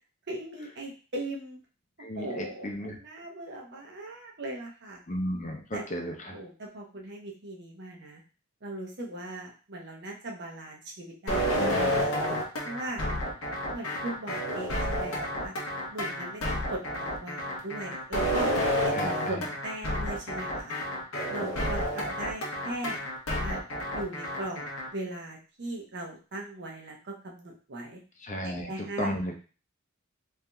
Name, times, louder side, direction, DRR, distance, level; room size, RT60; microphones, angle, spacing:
voice 1, 0.3-1.6 2.2-5.0 5.7-5.8 6.3-8.2 8.6-12.1 12.6-13.0 13.7-15.5 15.9-18.5 18.8-20.7 21.3-23.0 23.4-23.6 23.9-24.7 24.9-28.0 28.7-29.2, right 1 dB, 55° right, 0 dB, 0.8 m, -39 dB
voice 2, 2.0-3.0 5.1-6.4 11.6-12.0 12.3-12.4 18.9-19.4 21.1-21.3 21.6-21.7 28.2-29.3, equal, 35° left, 2 dB, 0.6 m, -34 dB
sound 1, 11.3-24.9, equal, 90° left, 0.8 m, -30 dB
3.4 x 2.6 x 2.2 m, 0.36 s
head